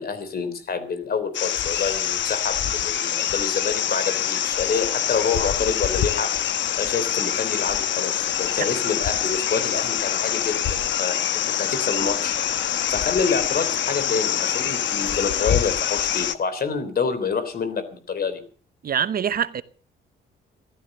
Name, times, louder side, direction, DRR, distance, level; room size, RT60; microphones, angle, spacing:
voice 1, 0.0-6.3 6.7-18.4, left 5 dB, 50° left, 3.6 m, -27 dB
sound 1, 1.3-16.3, left 10 dB, 70° left, 1.1 m, -25 dB
voice 2, 18.8-19.6, right 8 dB, 50° right, 0.9 m, -24 dB
15.0 x 12.5 x 6.6 m
cardioid pair, 90°, 20 cm